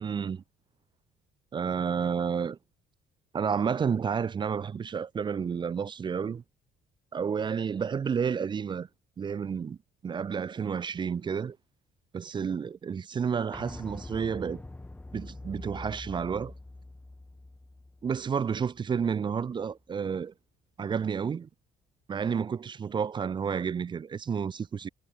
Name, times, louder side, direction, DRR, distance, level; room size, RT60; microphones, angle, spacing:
voice 1, 0.0-0.4 1.5-2.6 3.3-6.4 7.1-8.9 9.2-9.8 10.0-11.6 12.1-14.6 15.1-16.5 18.0-20.3 20.8-21.5 22.1-24.9, right 6 dB, 25° right, 0.5 m, -30 dB
sound 1, 13.5-19.2 19.5-19.6, left 2 dB, 10° left, 0.9 m, -45 dB
cardioid pair, 110°, 17 cm